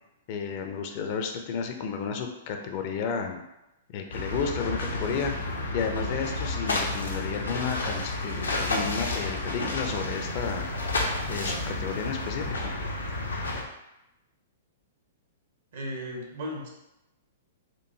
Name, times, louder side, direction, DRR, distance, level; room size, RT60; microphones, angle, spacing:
voice 1, 0.3-3.4 3.9-5.3 5.7-10.7 11.3-12.7, left 6 dB, 45° left, 4 dB, 0.5 m, -32 dB
sound 1, 4.1-13.6, left 2 dB, 85° left, 0.7 m, -31 dB
voice 2, 15.7-16.7, equal, 65° right, 0 dB, 1.0 m, -35 dB
4.5 x 2.5 x 2.7 m, 0.91 s
hypercardioid pair, 115°, 0 cm